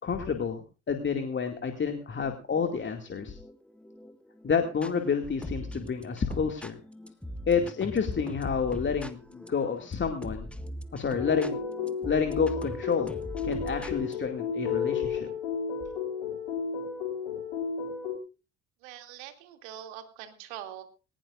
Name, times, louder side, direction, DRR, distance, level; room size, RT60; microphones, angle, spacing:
voice 1, 0.0-3.4 4.4-6.8 7.5-10.5 10.9-11.6 12.0-13.1 13.4-15.3, left 6 dB, 30° left, 5 dB, 2.3 m, -29 dB
sound 1, 2.2-4.9 5.4-14.2, left 1 dB, 5° left, 1.5 m, -42 dB
sound 2, 11.2-18.2, left 6 dB, 70° left, 3.9 m, -33 dB
voice 2, 18.8-20.8, right 11 dB, 65° right, 7 dB, 2.7 m, -43 dB
20.0 x 19.5 x 2.5 m, 0.34 s
figure-of-eight pair, 50°, 35 cm